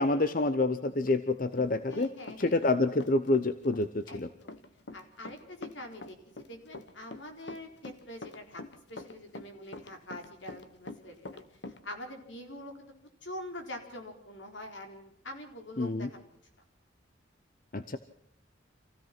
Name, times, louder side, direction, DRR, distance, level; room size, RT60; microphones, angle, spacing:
voice 1, 0.0-2.1 2.4-4.3 15.8-16.1 17.7-18.0, left 2 dB, 45° left, 11 dB, 0.9 m, -27 dB
Run, 1.1-2.7 3.0-11.8, left 2 dB, 65° left, 1.3 m, -45 dB
voice 2, 1.9-2.6 4.1-4.6 4.9-6.2 6.5-8.6 8.9-11.4 11.8-12.9 13.2-16.3, left 1 dB, 80° left, 4 dB, 4.3 m, -45 dB
26.5 x 16.0 x 6.1 m, 0.70 s
head